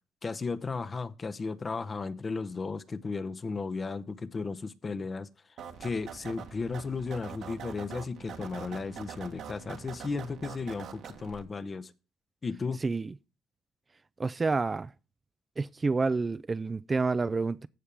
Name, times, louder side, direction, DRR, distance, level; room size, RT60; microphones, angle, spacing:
voice 1, 0.2-5.3 5.8-11.9 12.4-12.8, left 4 dB, 30° left, 0.8 m, -35 dB
sound 1, 5.6-11.4, right 7 dB, 65° right, 1.4 m, -44 dB
voice 2, 12.8-13.1 14.2-14.9 15.6-17.7, right 4 dB, 25° right, 0.3 m, -29 dB
15.5 x 5.5 x 3.4 m
cardioid pair, 85°, 0 cm